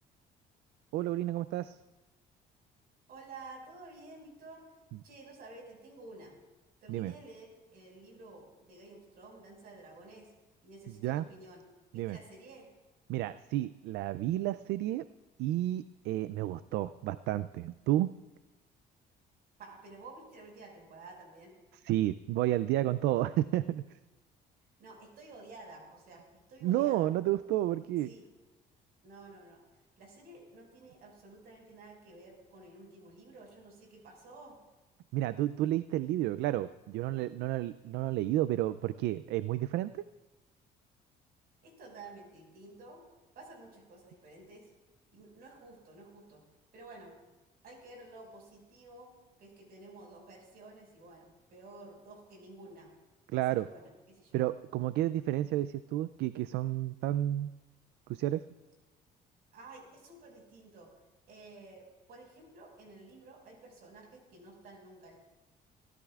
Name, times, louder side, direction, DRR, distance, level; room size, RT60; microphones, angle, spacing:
voice 1, 0.9-1.8 6.9-7.1 11.0-11.2 11.9-12.2 13.1-15.0 15.4-18.1 21.8-23.8 26.6-28.1 35.1-40.0 53.3-53.7 54.3-57.5 58.1-58.4, right 14 dB, 85° right, 15 dB, 0.4 m, -31 dB
voice 2, 3.1-4.6 5.0-6.4 6.8-10.3 10.6-11.6 11.9-12.7 19.6-21.6 24.8-27.1 28.0-28.3 29.0-29.6 30.0-34.6 41.6-43.0 43.3-44.7 45.1-46.4 46.7-47.2 47.6-52.9 53.3-54.4 59.5-60.9 61.3-65.2, right 2 dB, 65° right, 1 dB, 5.6 m, -52 dB
26.5 x 13.5 x 2.4 m, 1.1 s
cardioid pair, 110°, 17 cm